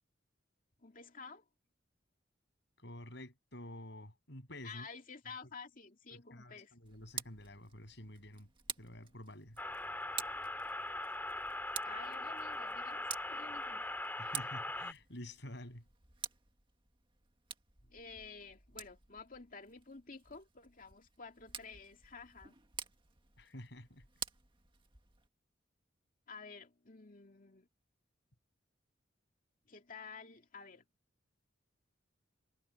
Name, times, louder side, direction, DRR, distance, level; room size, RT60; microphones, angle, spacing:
voice 1, 0.8-1.4 4.6-6.7 11.8-13.9 17.8-22.6 26.3-27.7 29.7-30.9, left 5 dB, 45° left, 2.2 m, -51 dB
voice 2, 2.8-4.9 6.1-8.5 8.8-9.6 14.2-15.8 23.4-24.1, left 1 dB, 60° left, 7.4 m, -49 dB
Tick, 6.8-25.3, right 7 dB, 25° right, 1.9 m, -49 dB
sound 1, 9.6-14.9, left 2 dB, 10° left, 2.2 m, -40 dB
head